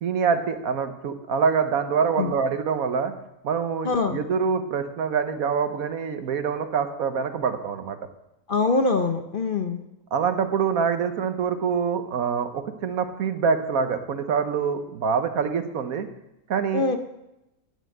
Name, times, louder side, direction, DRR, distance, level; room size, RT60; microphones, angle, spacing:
voice 1, 0.0-3.1 3.4-8.0 10.1-16.1 16.5-16.8, right 6 dB, 70° right, 9 dB, 1.4 m, -25 dB
voice 2, 3.8-4.2 8.5-9.8 16.7-17.0, left 3 dB, 45° left, 7 dB, 0.7 m, -23 dB
9.7 x 9.3 x 7.8 m, 0.94 s
omnidirectional pair, 1.6 m